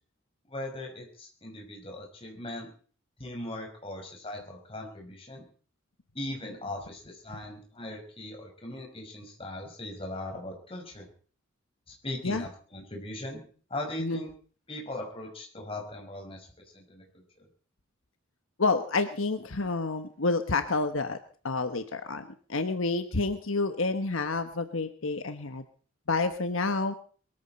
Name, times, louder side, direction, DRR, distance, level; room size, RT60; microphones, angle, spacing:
voice 1, 0.5-2.7 3.2-5.4 6.1-11.1 12.0-13.4 13.7-14.3 14.7-16.5 16.7-17.5, left 1 dB, 25° left, 1 dB, 5.6 m, -39 dB
voice 2, 18.6-21.2 21.4-25.6 26.1-26.9, left 3 dB, 80° left, 8 dB, 1.2 m, -29 dB
22.5 x 14.5 x 4.4 m, 0.43 s
head